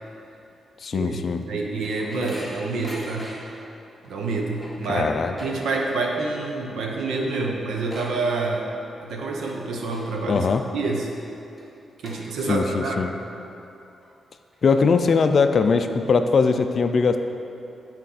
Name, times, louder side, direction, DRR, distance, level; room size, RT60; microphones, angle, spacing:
voice 1, 0.8-1.4 4.9-5.4 10.3-10.6 12.5-13.1 14.6-17.2, left 5 dB, 45° left, 8 dB, 0.3 m, -20 dB
sound 1, 1.2-3.6 4.0-4.1 4.4-6.1 6.4-6.8 7.1-7.2 7.4-8.8 9.2-9.5 9.9-10.4 10.9-11.0 11.6-11.7 12.0-12.8 13.2-13.3 14.0-14.1 14.5-15.4, equal, 10° right, 1.7 m, -42 dB
voice 2, 1.5-3.3 4.0-5.1 5.4-8.7 9.0-10.5 10.7-11.1 12.0-13.1, right 3 dB, 90° right, 1 dB, 0.9 m, -27 dB
10.0 x 4.3 x 4.1 m, 2.8 s
wide cardioid pair, 145°, 0 cm